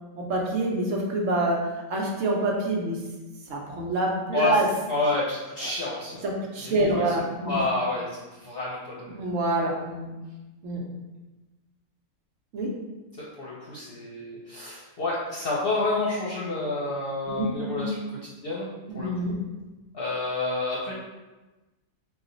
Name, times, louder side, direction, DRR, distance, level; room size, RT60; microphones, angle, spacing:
voice 1, 0.2-1.6 1.9-3.0 3.5-4.7 6.2-7.6 9.1-10.1 10.6-10.8 12.5-12.7 17.3-17.9 18.9-19.4, right 2 dB, 65° right, -1 dB, 1.1 m, -26 dB
voice 2, 4.9-6.2 6.6-7.0 7.4-9.2 13.2-18.0 18.4-18.7 18.9-19.3 19.9-20.9, left 2 dB, 55° left, -6 dB, 0.8 m, -29 dB
4.0 x 2.4 x 3.9 m, 1.1 s
omnidirectional pair, 1.5 m